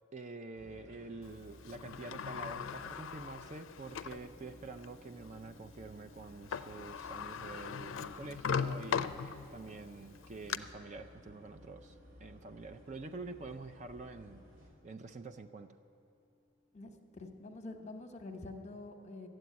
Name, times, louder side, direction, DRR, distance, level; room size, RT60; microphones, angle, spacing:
voice 1, 0.1-12.0 12.2-14.4 14.8-15.7, right 3 dB, 35° right, 7 dB, 0.4 m, -47 dB
sound 1, 0.5-14.7, left 1 dB, 80° right, 3.1 m, -58 dB
Sliding door, 1.6-4.3 4.8-4.9 6.2-6.3 6.5-9.7 10.1-10.6, left 6 dB, 80° left, 0.4 m, -38 dB
sound 2, 3.8-17.3, left 2 dB, 10° right, 0.9 m, -65 dB
voice 2, 16.7-19.3, left 2 dB, 35° left, 5 dB, 0.9 m, -47 dB
13.0 x 7.8 x 9.3 m, 2.5 s
head